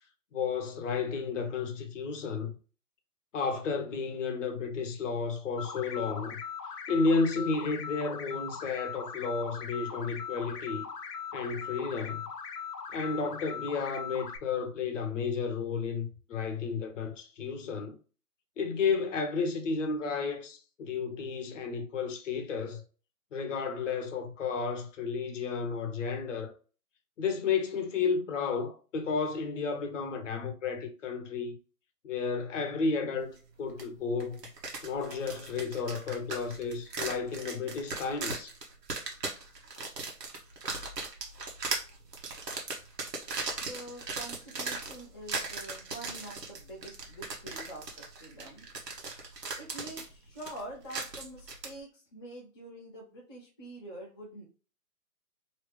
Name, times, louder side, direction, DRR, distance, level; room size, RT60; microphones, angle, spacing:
voice 1, 0.3-2.5 3.3-6.4 6.9-10.9 11.3-12.2 12.9-18.0 18.6-22.8 23.3-26.5 27.2-31.6 32.0-34.4 34.8-38.5, left 5 dB, 50° left, 0.9 m, -32 dB
sound 1, 5.6-14.4, left 7 dB, 80° left, 0.8 m, -40 dB
sound 2, 33.8-33.9 34.2-51.7, right 3 dB, 85° right, 1.2 m, -38 dB
voice 2, 43.6-48.6 49.6-54.4, right 1 dB, 20° left, 0.4 m, -46 dB
3.1 x 2.8 x 3.2 m
hypercardioid pair, 145°, 48 cm